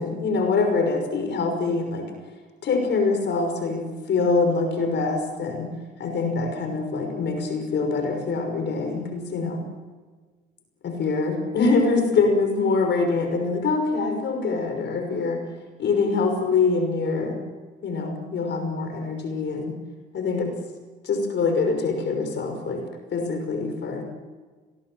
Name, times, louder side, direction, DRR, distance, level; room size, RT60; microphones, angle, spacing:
voice 1, 0.0-2.1 2.6-5.7 6.0-9.6 10.8-15.4 15.8-17.4 17.8-19.7 20.1-20.5 21.0-22.8 23.1-24.0, left 4 dB, 65° left, 5 dB, 5.7 m, -24 dB
27.0 x 20.0 x 7.9 m, 1.4 s
cardioid pair, 90°, 20 cm